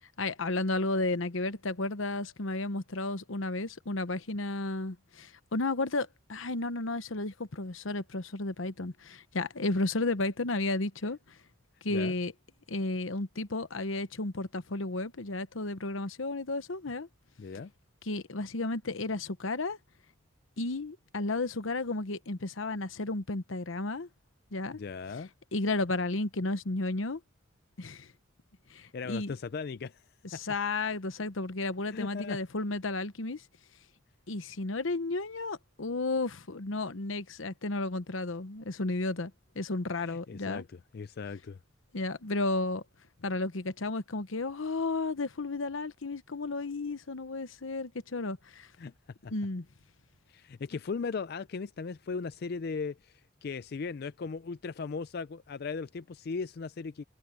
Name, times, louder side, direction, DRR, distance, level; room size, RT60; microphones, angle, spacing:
voice 1, 0.2-11.2 11.8-12.3 12.7-17.1 18.0-19.8 20.6-24.1 24.5-24.8 25.5-27.2 27.8-28.1 28.7-29.3 30.3-33.4 34.3-40.6 41.9-42.8 43.2-48.7 49.3-49.6, left 2 dB, 80° left, 1.0 m, -33 dB
voice 2, 17.4-17.7 24.8-25.3 28.8-30.4 31.9-32.4 40.0-41.6 48.8-48.9 49.2-49.3 50.3-57.0, left 5 dB, 50° left, 0.4 m, -38 dB
head